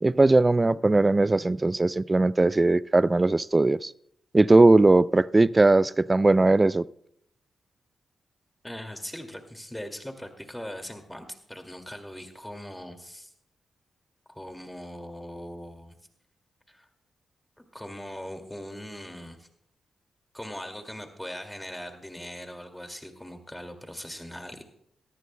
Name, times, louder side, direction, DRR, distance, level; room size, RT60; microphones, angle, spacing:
voice 1, 0.0-3.9 4.3-6.8, right 2 dB, 25° right, 20 dB, 0.4 m, -19 dB
voice 2, 8.6-13.3 14.3-16.0 16.7-16.9 17.6-19.5 20.3-24.6, equal, 5° left, 5 dB, 2.2 m, -40 dB
20.5 x 14.0 x 2.2 m, 0.73 s
supercardioid pair, 55°, 0 cm